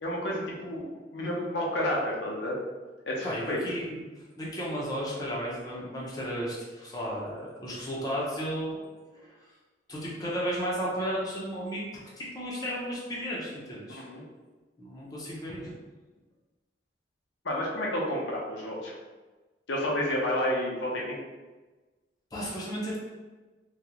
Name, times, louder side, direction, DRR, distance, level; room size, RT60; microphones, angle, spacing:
voice 1, 0.0-2.6 3.1-3.6 13.9-14.2 17.4-19.0 19.7-21.2, left 1 dB, 85° left, -3 dB, 0.7 m, -30 dB
voice 2, 3.2-4.0 4.4-8.8 9.1-9.3 9.9-11.8 12.2-14.0 14.8-15.7 22.3-23.0, equal, 20° left, -5 dB, 0.8 m, -34 dB
3.7 x 2.4 x 2.9 m, 1.2 s
head